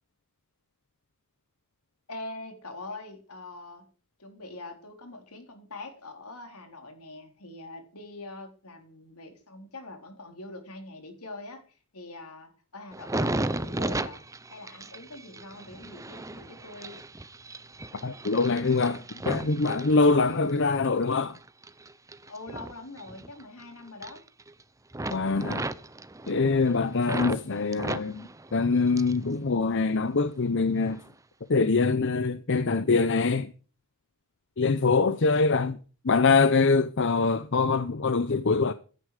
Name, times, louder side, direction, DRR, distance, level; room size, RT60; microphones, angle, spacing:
voice 1, 2.1-3.9 4.2-14.3 14.5-17.0 22.3-24.2 35.3-35.4, left 2 dB, 85° left, 4.0 m, -43 dB
sound 1, 12.9-20.6 21.0-23.6 23.9-24.6 24.9-27.4 27.7-29.3 29.6-30.3 30.9-31.1, right 2 dB, 15° right, 0.7 m, -35 dB
voice 2, 18.0-21.4 25.1-25.7 26.3-31.0 31.5-33.5 34.6-35.8 36.0-38.7, left 4 dB, 55° left, 0.7 m, -24 dB
16.5 x 11.5 x 4.9 m
head